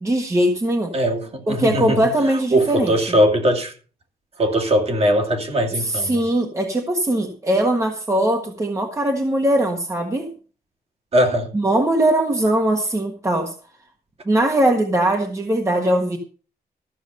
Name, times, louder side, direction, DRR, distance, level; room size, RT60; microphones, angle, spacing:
voice 1, 0.0-0.9 1.5-2.9 5.8-10.3 11.5-13.5 14.2-16.2, right 1 dB, 20° right, 1.5 m, -20 dB
voice 2, 0.9-2.0 2.2-3.8 4.4-6.2 11.1-11.5, equal, 40° right, 2.6 m, -20 dB
14.0 x 7.1 x 6.6 m
wide cardioid pair, 175°, 16 cm